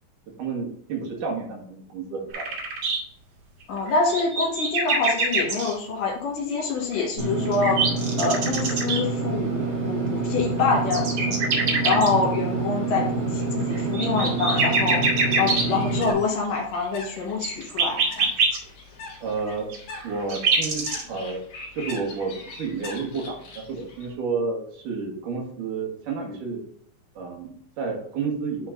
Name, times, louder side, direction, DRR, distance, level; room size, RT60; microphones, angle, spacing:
voice 1, 0.4-2.5 19.2-19.7 20.0-21.4 21.7-26.6 27.1-28.7, right 4 dB, 75° right, 0 dB, 3.3 m, -31 dB
sound 1, 2.3-3.0 3.8-5.7 7.0-9.0 10.4-12.1 13.7-15.6 17.3-18.6 19.7-21.0, right 4 dB, 55° right, 2.5 m, -24 dB
voice 2, 3.7-7.8 8.2-11.4 11.8-15.0 15.3-18.3, left 4 dB, 85° left, -2 dB, 3.5 m, -26 dB
Engine / Mechanisms, 7.2-16.1, right 3 dB, 25° right, 1.0 m, -27 dB
Bird, 15.3-24.1, left 3 dB, 70° left, 3.3 m, -42 dB
9.9 x 4.3 x 3.9 m, 0.65 s
omnidirectional pair, 3.7 m